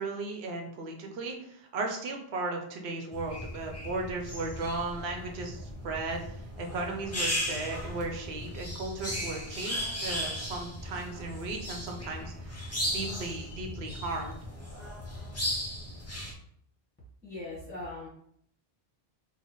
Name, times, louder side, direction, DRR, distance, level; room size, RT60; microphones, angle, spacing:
voice 1, 0.0-14.4, right 3 dB, 85° right, 3 dB, 0.9 m, -36 dB
sound 1, 3.1-16.3, equal, 25° left, 0.3 m, -36 dB
voice 2, 17.2-18.1, left 2 dB, 10° left, -6 dB, 0.9 m, -40 dB
3.0 x 2.1 x 4.1 m, 0.69 s
omnidirectional pair, 1.0 m